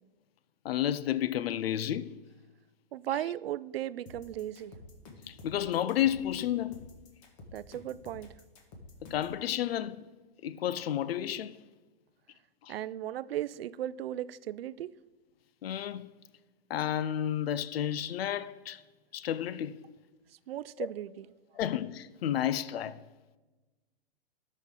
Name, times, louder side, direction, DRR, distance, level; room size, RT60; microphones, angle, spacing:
voice 1, 0.6-2.1 5.3-6.8 9.1-10.1 10.4-11.6 12.6-12.7 15.6-16.1 16.7-18.8 19.1-19.8 20.8-20.9 21.6-23.0, left 11 dB, 90° left, 0.5 m, -31 dB
voice 2, 2.9-4.7 7.5-8.3 12.7-14.9 20.5-21.3, right 12 dB, 85° right, 0.5 m, -36 dB
sound 1, 4.1-9.4, left 2 dB, 35° left, 1.5 m, -50 dB
12.5 x 6.4 x 3.7 m
hypercardioid pair, 165°, 29 cm